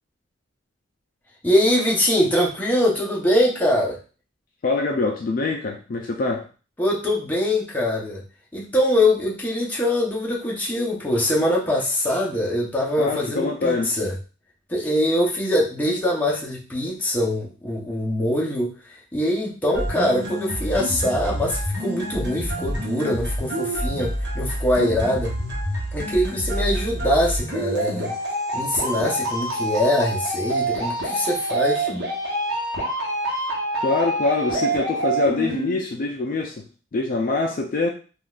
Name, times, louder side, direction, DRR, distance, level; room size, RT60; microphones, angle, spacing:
voice 1, 1.4-4.0 6.8-8.2 8.5-14.1 14.7-25.4 25.9-28.2 28.5-31.9, left 1 dB, 10° left, -4 dB, 0.7 m, -23 dB
voice 2, 4.6-6.5 13.0-13.9 33.8-36.7 36.9-37.9, left 3 dB, 45° left, 2 dB, 0.3 m, -24 dB
sound 1, 19.7-35.8, right 1 dB, 55° right, 1.0 m, -27 dB
3.7 x 2.4 x 2.3 m, 0.36 s
head